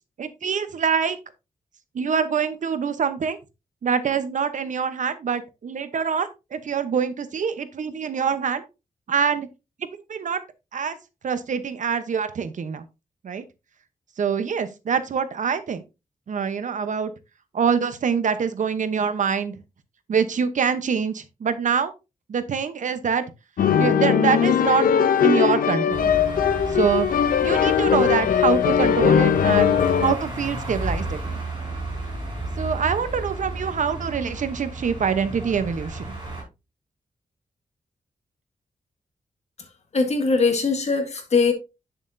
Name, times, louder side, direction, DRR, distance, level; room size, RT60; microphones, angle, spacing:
voice 1, 0.2-1.2 1.9-3.4 3.8-8.6 9.1-9.5 10.1-10.4 10.7-11.0 11.2-12.8 13.2-13.4 14.2-15.8 16.3-17.1 17.5-19.6 20.1-21.9 22.3-23.2 23.8-24.9 25.2-26.1 26.7-27.1 27.4-29.7 30.0-31.4 32.6-36.1, right 6 dB, 60° right, 0.9 m, -25 dB
sound 1, 23.6-30.1, left 8 dB, 85° left, 0.6 m, -20 dB
sound 2, 25.9-36.4, right 1 dB, 30° right, 5.6 m, -33 dB
voice 2, 39.9-41.5, left 4 dB, 50° left, 1.9 m, -21 dB
8.8 x 7.0 x 2.6 m
wide cardioid pair, 140°, 14 cm